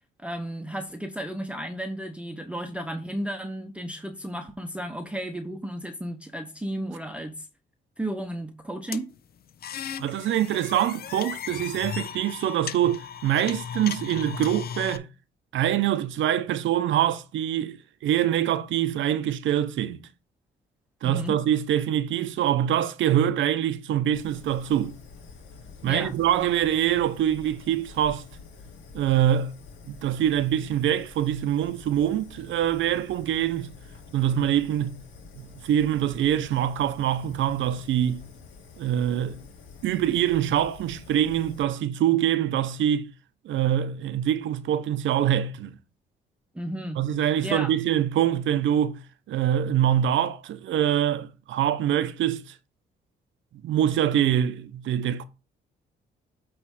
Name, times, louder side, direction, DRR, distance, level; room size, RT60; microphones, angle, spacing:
voice 1, 0.2-7.5 8.0-9.1 21.0-21.4 25.8-26.2 46.5-47.0 47.4-47.7, right 1 dB, 5° right, 0.7 m, -33 dB
sound 1, 8.9-15.0, left 8 dB, 50° left, 0.5 m, -36 dB
voice 2, 10.0-15.1 15.5-17.8 18.0-20.1 21.0-25.0 25.8-28.2 28.9-29.5 29.9-33.7 34.1-35.0 35.4-38.3 38.8-39.4 39.8-43.1 43.4-45.8 47.0-49.0 49.3-52.4 53.6-55.2, right 10 dB, 75° right, 0.7 m, -24 dB
Fire, 24.1-41.6, left 4 dB, 80° left, 1.8 m, -48 dB
8.6 x 3.2 x 4.8 m
cardioid pair, 90°, 20 cm